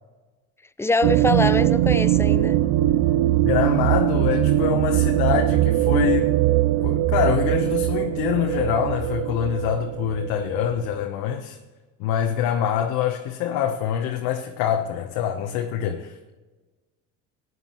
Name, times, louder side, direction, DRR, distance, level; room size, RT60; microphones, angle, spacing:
voice 1, 0.8-2.6, left 3 dB, 5° left, 0.4 m, -24 dB
sound 1, 1.0-11.0, right 14 dB, 60° right, 0.5 m, -21 dB
voice 2, 3.4-6.3 6.8-11.6 12.0-16.4, left 9 dB, 65° left, 1.1 m, -25 dB
15.0 x 9.5 x 3.1 m
hypercardioid pair, 80°, 39 cm